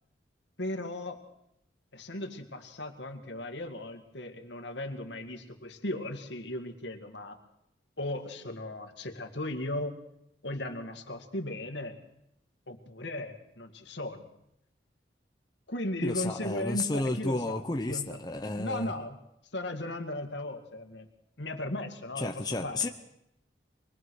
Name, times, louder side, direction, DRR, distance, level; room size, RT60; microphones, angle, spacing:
voice 1, 0.6-1.2 1.9-7.4 8.0-10.0 10.4-12.0 12.7-14.3 15.7-18.2 18.6-19.2 19.5-21.1 21.4-22.9, left 1 dB, 70° left, 5 dB, 2.1 m, -37 dB
voice 2, 16.0-18.9 22.2-22.9, left 2 dB, 20° left, 4 dB, 0.8 m, -32 dB
24.0 x 20.5 x 6.4 m, 0.80 s
head